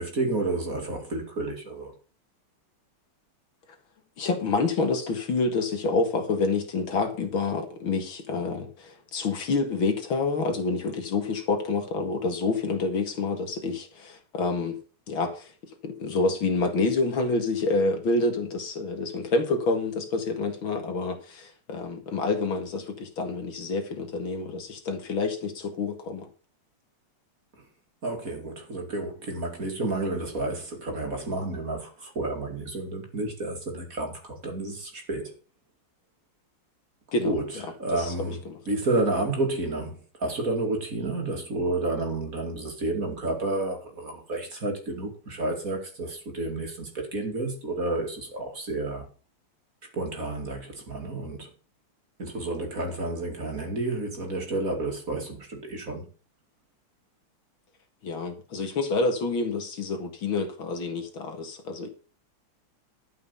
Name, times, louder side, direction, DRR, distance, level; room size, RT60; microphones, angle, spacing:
voice 1, 0.0-1.9 28.0-35.3 37.2-38.4 38.7-49.1 49.9-51.5 52.2-56.0, right 2 dB, 40° right, 2.7 m, -30 dB
voice 2, 4.2-14.8 15.1-15.5 15.8-26.3 37.1-37.3 37.9-38.1 38.5-38.6 58.0-61.9, left 3 dB, 65° left, 2.7 m, -28 dB
12.0 x 5.8 x 6.8 m
omnidirectional pair, 2.3 m